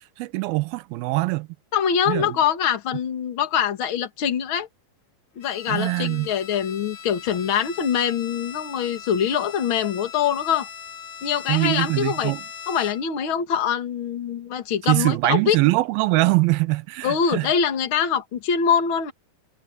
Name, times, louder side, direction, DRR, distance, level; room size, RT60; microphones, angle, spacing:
voice 1, 0.2-1.5 2.1-2.3 5.7-6.3 11.5-12.4 14.9-17.5, right 21 dB, 90° right, 2.5 m, -22 dB
voice 2, 1.7-4.7 5.4-10.7 11.2-12.3 12.7-15.6 17.0-19.1, left 8 dB, 40° left, 2.3 m, -24 dB
Bowed string instrument, 5.4-13.2, left 7 dB, 60° left, 2.9 m, -40 dB
omnidirectional pair, 4.3 m